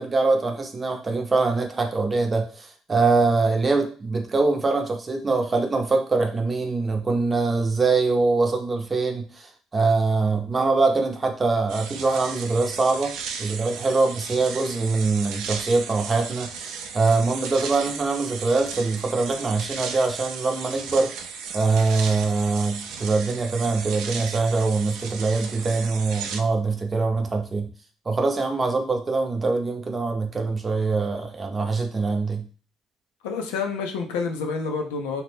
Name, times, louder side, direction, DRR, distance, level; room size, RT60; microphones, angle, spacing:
voice 1, 0.0-16.5 16.9-21.1 21.5-27.7 28.1-32.5, right 3 dB, 30° right, 4 dB, 0.7 m, -23 dB
sound 1, 11.7-26.4, right 6 dB, 75° right, 0.3 m, -35 dB
voice 2, 33.2-35.2, left 5 dB, 90° left, 3 dB, 0.4 m, -28 dB
2.7 x 2.1 x 3.3 m, 0.38 s
supercardioid pair, 70°, 0 cm